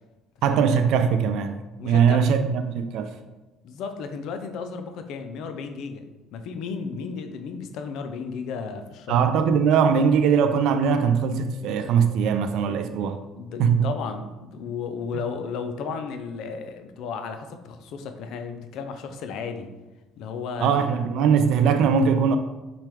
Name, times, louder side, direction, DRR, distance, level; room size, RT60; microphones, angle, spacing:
voice 1, 0.4-1.6 1.8-3.1 9.1-13.2 13.6-13.9 20.6-22.4, right 6 dB, 70° right, 0.3 m, -21 dB
voice 2, 1.8-2.5 3.6-9.2 12.7-12.8 13.4-19.7 20.2-21.0, left 5 dB, 70° left, 0.4 m, -34 dB
5.8 x 2.3 x 3.4 m
cardioid pair, 100°, 0 cm